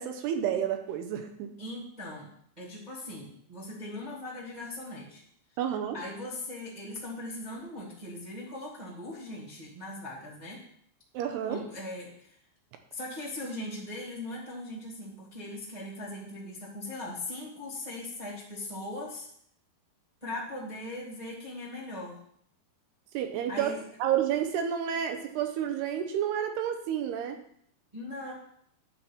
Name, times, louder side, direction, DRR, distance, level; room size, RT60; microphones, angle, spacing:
voice 1, 0.0-1.6 5.6-6.0 11.1-11.6 23.1-27.4, right 9 dB, 80° right, 6 dB, 2.7 m, -30 dB
voice 2, 1.6-2.3 2.6-5.2 5.9-10.6 11.4-12.3 12.9-19.3 20.2-22.2 23.5-23.8 27.9-28.3, left 1 dB, 35° right, -6 dB, 0.6 m, -39 dB
9.8 x 4.4 x 7.1 m, 0.66 s
omnidirectional pair, 5.0 m